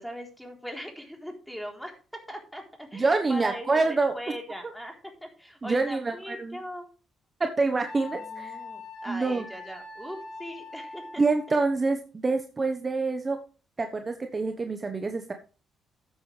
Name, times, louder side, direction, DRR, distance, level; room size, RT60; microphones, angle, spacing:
voice 1, 0.0-1.9 2.3-5.0 5.2-6.9 8.1-11.2 11.5-11.6, equal, ahead, 2 dB, 3.7 m, -40 dB
voice 2, 2.9-4.1 5.6-6.6 7.4-8.6 9.1-9.5 11.2-13.4 13.8-15.3, right 3 dB, 30° right, 6 dB, 1.2 m, -26 dB
Wind instrument woodwind instrument, 7.8-11.6, left 3 dB, 80° left, 4.6 m, -42 dB
13.0 x 8.8 x 3.3 m, 0.36 s
cardioid pair, 90°, 0 cm